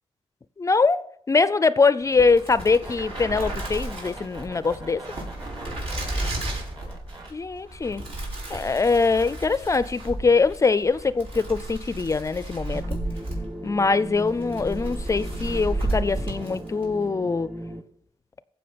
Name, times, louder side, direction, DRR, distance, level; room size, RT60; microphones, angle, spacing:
voice 1, 0.6-5.0 7.3-8.0 8.5-13.0 13.6-17.5, left 4 dB, 30° left, 0.4 m, -23 dB
sound 1, 2.0-16.9, right 1 dB, 60° right, 5.3 m, -33 dB
sound 2, 2.4-7.3, right 2 dB, 45° right, 3.1 m, -43 dB
sound 3, 12.7-17.8, equal, 10° right, 1.2 m, -37 dB
15.5 x 6.1 x 5.2 m
wide cardioid pair, 135°, 11 cm